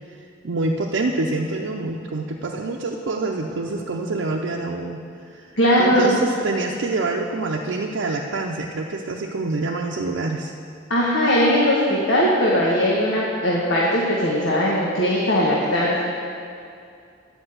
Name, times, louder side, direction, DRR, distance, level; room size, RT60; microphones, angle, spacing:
voice 1, 0.4-5.5 5.8-10.5, right 2 dB, 75° right, -1 dB, 0.6 m, -26 dB
voice 2, 5.6-6.2 10.9-16.0, equal, 85° left, -5 dB, 1.3 m, -19 dB
9.8 x 5.1 x 7.8 m, 2.4 s
head